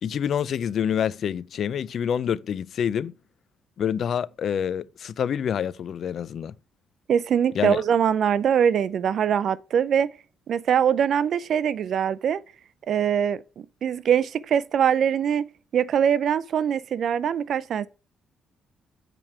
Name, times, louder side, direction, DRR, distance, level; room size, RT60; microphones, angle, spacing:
voice 1, 0.0-3.1 3.8-6.5 7.5-7.8, left 8 dB, 60° left, 0.4 m, -27 dB
voice 2, 7.1-10.1 10.5-12.4 12.9-15.5 15.7-17.9, right 8 dB, 65° right, 0.5 m, -23 dB
7.5 x 5.0 x 4.5 m
cardioid pair, 90°, 0 cm